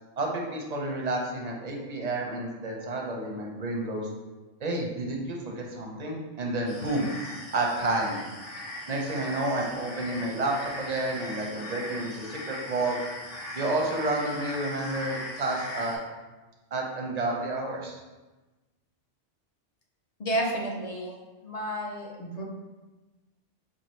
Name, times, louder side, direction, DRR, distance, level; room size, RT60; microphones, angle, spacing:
voice 1, 0.2-4.1 4.6-7.1 7.5-8.2 8.9-13.0 13.5-16.0 16.7-18.0, right 2 dB, 50° right, 0 dB, 0.5 m, -30 dB
sound 1, 6.7-16.0, left 1 dB, 90° left, 1.3 m, -39 dB
voice 2, 20.2-21.2 21.4-22.4, right 1 dB, 50° left, -1 dB, 0.4 m, -31 dB
4.6 x 2.5 x 3.0 m, 1.2 s
omnidirectional pair, 1.2 m